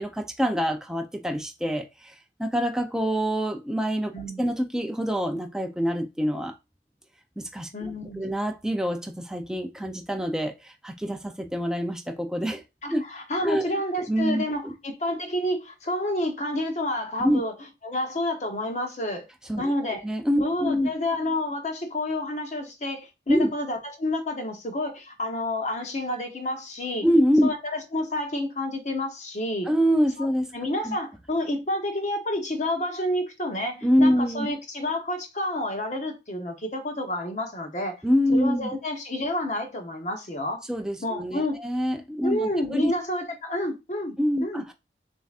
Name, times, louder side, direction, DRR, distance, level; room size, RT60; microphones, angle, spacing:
voice 1, 0.0-2.1 2.4-4.1 4.4-6.5 7.4-7.7 8.2-12.6 12.9-13.0 13.4-13.6 14.1-14.7 17.2-17.4 19.5-19.7 20.0-20.9 23.3-23.5 27.0-27.5 29.7-30.6 30.8-31.0 33.8-34.5 38.0-38.8 40.7-42.9 44.2-44.7, equal, 5° right, 0.4 m, -25 dB
voice 2, 4.1-4.4 7.7-8.2 12.8-17.5 17.8-19.3 19.6-20.0 20.4-27.1 27.4-29.7 30.2-30.3 30.5-38.0 38.3-40.6 41.0-41.6 42.2-44.2 44.4-44.6, left 1 dB, 40° left, 0.9 m, -29 dB
6.6 x 2.7 x 2.4 m
head